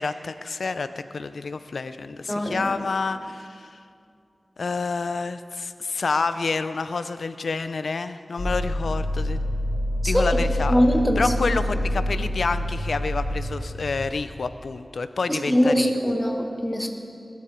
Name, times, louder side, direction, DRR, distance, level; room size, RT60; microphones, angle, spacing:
voice 1, 0.0-3.8 4.6-9.4 10.0-10.7 11.2-16.1, left 4 dB, 85° left, 11 dB, 0.6 m, -28 dB
voice 2, 2.3-2.7 10.0-10.4 10.7-11.6 15.3-16.9, equal, 5° left, 2 dB, 1.9 m, -22 dB
sound 1, 8.4-14.1, left 1 dB, 50° left, 4.9 m, -27 dB
20.0 x 13.0 x 4.4 m, 2.4 s
cardioid pair, 45°, 0 cm